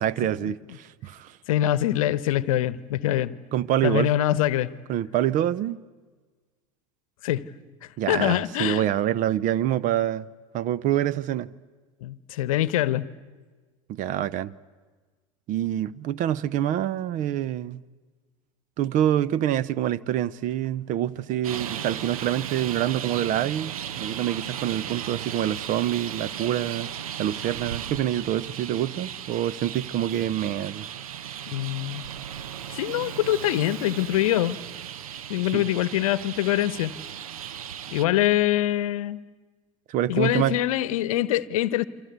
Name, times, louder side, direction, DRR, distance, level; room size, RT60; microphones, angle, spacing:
voice 1, 0.0-1.4 3.5-4.1 4.9-5.8 8.0-10.3 10.5-11.5 13.9-14.5 15.5-17.8 18.8-26.9 27.2-30.9 35.5-35.6 39.9-40.6, right 11 dB, 45° right, 0.8 m, -26 dB
voice 2, 1.5-3.3 3.8-4.7 7.2-7.5 8.1-8.8 12.0-13.1 31.5-32.0 32.7-34.6 35.3-36.9 37.9-39.2 40.1-41.8, left 13 dB, 70° left, 0.9 m, -24 dB
Traffic noise roadway noise, 21.4-38.0, right 9 dB, 75° right, 0.9 m, -36 dB
28.5 x 25.0 x 8.1 m
hypercardioid pair, 80°, 18 cm